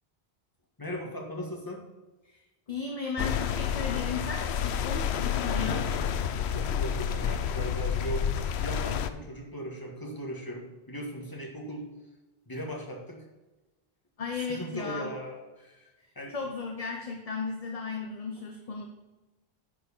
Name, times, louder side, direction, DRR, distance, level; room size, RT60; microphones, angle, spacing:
voice 1, 0.8-1.8 5.5-5.7 6.2-8.3 8.6-11.9 12.5-13.3 14.5-16.4, equal, 20° left, 0 dB, 1.8 m, -38 dB
voice 2, 2.7-5.8 14.2-15.1 16.0-18.9, left 4 dB, 35° left, 2 dB, 1.0 m, -35 dB
sound 1, 3.2-9.1, left 8 dB, 85° left, 0.9 m, -29 dB
9.9 x 4.7 x 5.5 m, 1.1 s
omnidirectional pair, 1.1 m